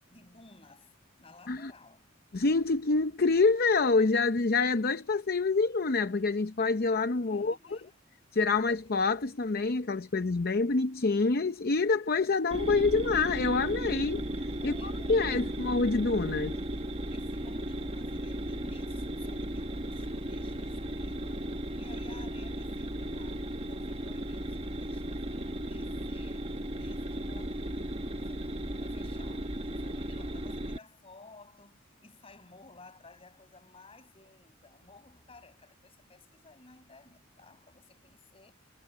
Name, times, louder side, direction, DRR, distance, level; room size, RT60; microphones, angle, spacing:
voice 1, 0.1-0.9 1.2-2.1 7.3-8.0 14.6-15.5 17.1-21.5 21.7-25.3 25.6-38.5, left 3 dB, 30° left, 7.2 m, -56 dB
voice 2, 2.3-7.6 8.3-14.2 14.6-16.6, left 3 dB, 50° left, 0.7 m, -27 dB
sound 1, 12.5-30.8, right 1 dB, 30° right, 1.4 m, -35 dB
head